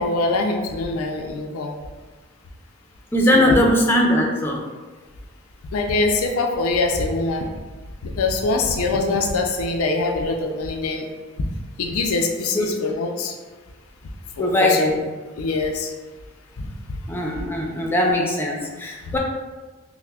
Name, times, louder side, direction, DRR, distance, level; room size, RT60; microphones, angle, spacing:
voice 1, 0.0-1.7 3.3-3.6 5.7-7.5 8.0-11.1 11.4-11.5 11.8-13.3 14.3-15.0 15.4-15.9 16.6-17.0 19.1-19.2, left 3 dB, 85° left, 3 dB, 0.4 m, -23 dB
voice 2, 3.1-4.6 9.1-9.2 12.5-12.7 14.4-14.9 17.1-19.2, left 1 dB, 10° left, -1 dB, 0.4 m, -20 dB
5.7 x 2.1 x 2.3 m, 1.3 s
head